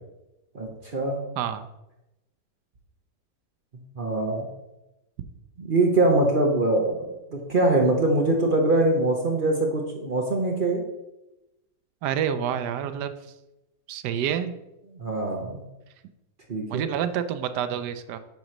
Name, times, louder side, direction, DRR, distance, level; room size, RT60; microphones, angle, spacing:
voice 1, 0.5-1.2 4.0-4.5 5.6-10.8 14.9-15.6 16.5-16.8, right 2 dB, 40° right, 1 dB, 0.8 m, -23 dB
voice 2, 1.4-1.7 12.0-13.1 13.9-14.5 16.7-18.2, right 9 dB, 85° right, 11 dB, 1.2 m, -28 dB
8.9 x 3.0 x 6.3 m, 0.95 s
omnidirectional pair, 1.8 m